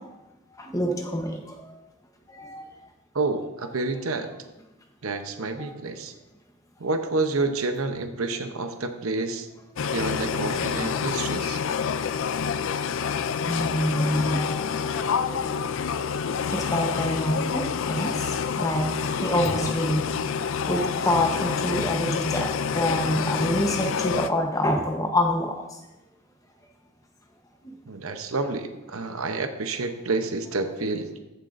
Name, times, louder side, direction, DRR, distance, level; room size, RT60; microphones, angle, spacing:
voice 1, 0.6-1.7 2.3-2.6 13.5-14.6 14.8-15.6 16.5-18.1 18.6-18.9 19.2-20.0 20.7-25.6, left 1 dB, 15° left, 2 dB, 0.9 m, -26 dB
voice 2, 3.1-4.3 5.0-6.1 6.8-9.5 9.9-11.6 27.9-31.2, right 3 dB, 75° right, 7 dB, 0.8 m, -29 dB
sound 1, 9.8-24.3, left 6 dB, 60° left, 0.4 m, -28 dB
14.0 x 7.4 x 2.6 m, 1.0 s
head